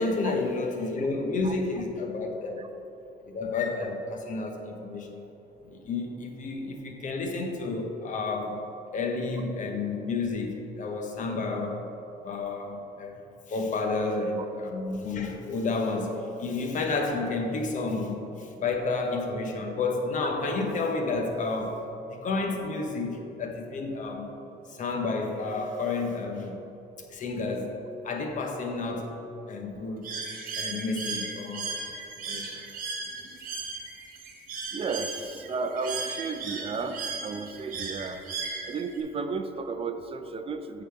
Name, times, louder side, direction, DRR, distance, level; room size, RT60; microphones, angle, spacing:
voice 1, 0.0-2.7 3.3-5.3 5.6-8.6 8.9-11.8 12.2-13.2 13.5-21.8 22.1-24.3 24.7-26.6 27.1-27.8 28.0-29.1 29.5-30.0 30.6-31.8 32.3-32.6, left 3 dB, 50° left, 3 dB, 1.1 m, -31 dB
Bird, 30.0-39.0, right 4 dB, 55° right, 1.2 m, -36 dB
voice 2, 33.1-33.4 34.7-38.2 38.7-40.8, right 4 dB, 35° right, 8 dB, 0.5 m, -33 dB
8.1 x 4.0 x 5.8 m, 2.9 s
cardioid pair, 110°, 17 cm